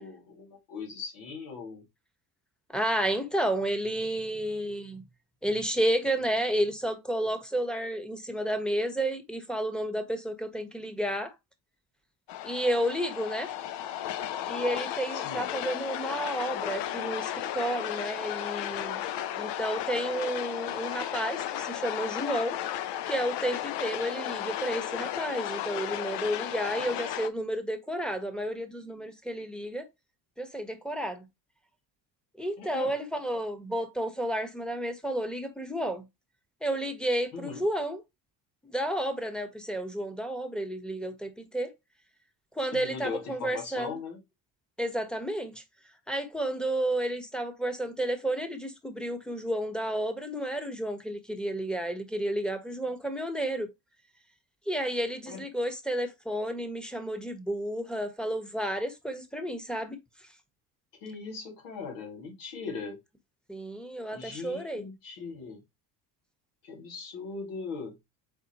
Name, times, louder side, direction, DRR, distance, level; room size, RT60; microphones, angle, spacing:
voice 1, 0.0-1.8 15.1-15.5 32.6-32.9 37.3-37.6 42.7-44.2 55.3-55.4 61.0-63.0 64.1-65.6 66.6-68.0, left 4 dB, 85° left, 2.0 m, -39 dB
voice 2, 2.7-5.0 5.4-11.3 12.4-13.5 14.5-19.0 19.4-22.6 23.0-29.9 30.4-31.2 32.4-36.0 36.6-38.0 38.6-41.7 42.5-44.0 44.8-45.6 46.1-53.7 54.7-60.0 63.5-64.8, right 1 dB, ahead, 1.1 m, -31 dB
sound 1, 12.3-27.3, left 11 dB, 60° left, 0.7 m, -34 dB
4.4 x 3.6 x 2.9 m
supercardioid pair, 70°, 49 cm